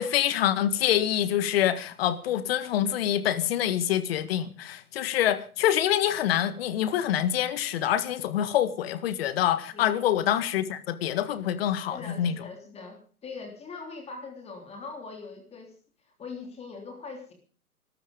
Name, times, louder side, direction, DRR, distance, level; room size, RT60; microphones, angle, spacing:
voice 1, 0.0-12.4, left 11 dB, 40° left, 12 dB, 1.8 m, -26 dB
voice 2, 11.9-15.8 16.0-17.3, left 4 dB, 15° left, 3 dB, 3.4 m, -41 dB
21.5 x 13.0 x 5.2 m, 0.41 s
hypercardioid pair, 135°, 44 cm